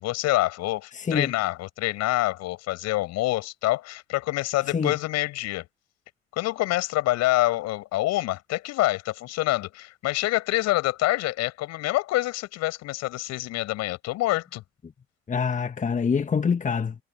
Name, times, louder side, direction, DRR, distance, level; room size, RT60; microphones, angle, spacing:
voice 1, 0.0-5.7 6.3-14.6, left 17 dB, 55° left, 7.7 m, -26 dB
voice 2, 0.9-1.3 4.7-4.9 15.3-17.0, left 6 dB, 25° left, 1.5 m, -25 dB
figure-of-eight pair, 60°, 31 cm